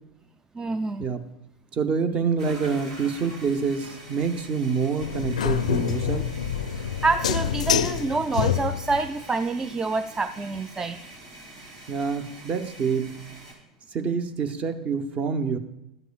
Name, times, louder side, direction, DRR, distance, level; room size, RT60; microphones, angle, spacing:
voice 1, 0.5-1.1 6.7-11.0, right 3 dB, 15° right, 10 dB, 0.3 m, -27 dB
voice 2, 1.7-6.3 11.9-13.1 13.9-15.6, right 5 dB, 35° right, 8 dB, 0.9 m, -27 dB
sound 1, 2.4-13.5, right 2 dB, 65° right, 3.5 m, -45 dB
sound 2, 5.0-9.1, left 8 dB, 75° left, 0.4 m, -26 dB
13.0 x 7.9 x 2.4 m, 0.91 s
figure-of-eight pair, 85°, 4 cm